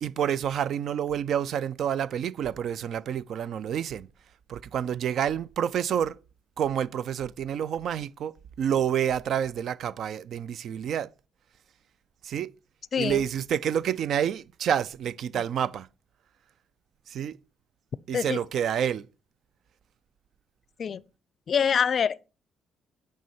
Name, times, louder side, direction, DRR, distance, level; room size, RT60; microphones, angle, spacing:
voice 1, 0.0-4.1 4.5-6.2 6.6-11.1 12.2-12.5 13.0-15.9 17.1-17.4 18.1-19.1, right 9 dB, 70° right, 0.3 m, -28 dB
voice 2, 21.5-22.3, left 7 dB, 50° left, 0.4 m, -25 dB
9.3 x 5.6 x 4.2 m
cardioid pair, 90°, 0 cm